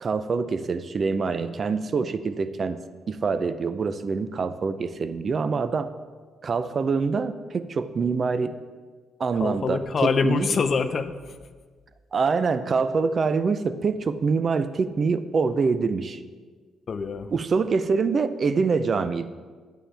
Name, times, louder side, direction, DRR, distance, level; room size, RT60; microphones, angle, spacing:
voice 1, 0.0-2.8 3.1-5.9 6.4-8.6 9.2-10.5 12.1-16.2 17.3-19.3, right 4 dB, 45° right, 12 dB, 0.5 m, -25 dB
voice 2, 9.4-11.3 16.9-17.3, left 5 dB, 45° left, 10 dB, 0.6 m, -25 dB
11.0 x 8.9 x 3.4 m, 1.5 s
cardioid pair, 90°, 0 cm